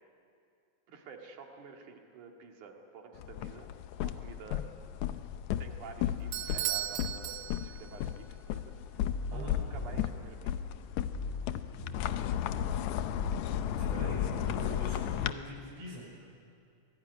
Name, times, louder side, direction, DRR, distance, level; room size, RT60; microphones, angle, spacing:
voice 1, 0.9-3.7 4.0-4.7 5.6-9.0 9.3-10.6, right 5 dB, 85° right, 2 dB, 3.6 m, -50 dB
sound 1, 3.2-15.3, left 11 dB, 75° left, 2.0 m, -35 dB
Bell / Doorbell, 6.3-8.0, right 12 dB, 70° right, 1.7 m, -36 dB
sound 2, 9.0-15.0, left 3 dB, 35° left, 1.6 m, -41 dB
voice 2, 13.7-16.1, right 1 dB, 50° right, -5 dB, 7.2 m, -43 dB
25.5 x 18.0 x 9.7 m, 2.4 s
omnidirectional pair, 3.4 m